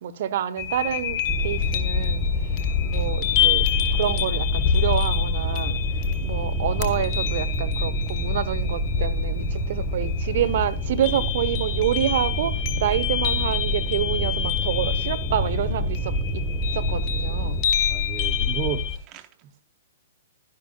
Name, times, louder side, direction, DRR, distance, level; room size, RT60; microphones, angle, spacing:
voice 1, 0.0-5.8 6.2-16.4 16.7-17.6, right 10 dB, 55° right, 1.0 m, -28 dB
sound 1, 0.6-19.0, left 8 dB, 35° left, 1.4 m, -27 dB
sound 2, 1.3-17.6, equal, 10° left, 1.2 m, -28 dB
voice 2, 17.9-19.6, right 12 dB, 30° right, 0.7 m, -34 dB
12.0 x 10.5 x 2.3 m
hypercardioid pair, 120°, 0 cm